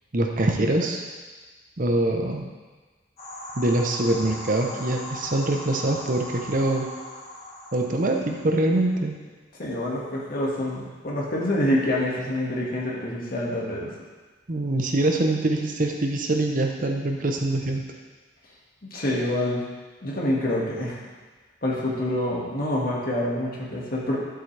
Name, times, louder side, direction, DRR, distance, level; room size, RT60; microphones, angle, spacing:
voice 1, 0.1-1.0 1.8-2.5 3.6-6.9 7.7-9.2 14.5-17.8, right 2 dB, 45° right, 2 dB, 0.8 m, -24 dB
sound 1, 3.2-8.9, left 1 dB, 35° left, 1.8 m, -39 dB
voice 2, 9.6-13.9 18.9-19.7 20.0-21.0 21.6-24.2, left 1 dB, 50° left, -4 dB, 1.9 m, -26 dB
11.0 x 7.7 x 3.4 m, 1.3 s
head